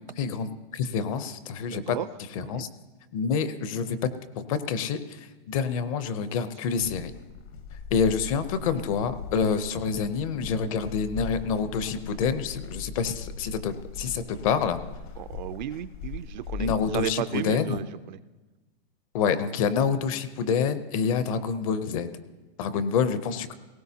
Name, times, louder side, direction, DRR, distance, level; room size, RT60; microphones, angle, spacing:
voice 1, 0.0-2.0 2.4-2.7 3.1-4.0 4.4-7.1 7.9-14.8 16.6-17.8 19.1-22.1 22.6-23.5, left 6 dB, 35° left, 12 dB, 0.6 m, -27 dB
voice 2, 1.7-2.1 2.4-2.6 15.2-18.2 22.7-22.8, right 12 dB, 55° right, 12 dB, 0.4 m, -34 dB
sound 1, 6.8-17.0, left 5 dB, 60° left, 1.1 m, -40 dB
18.5 x 16.5 x 2.8 m, 1.2 s
supercardioid pair, 165°, 29 cm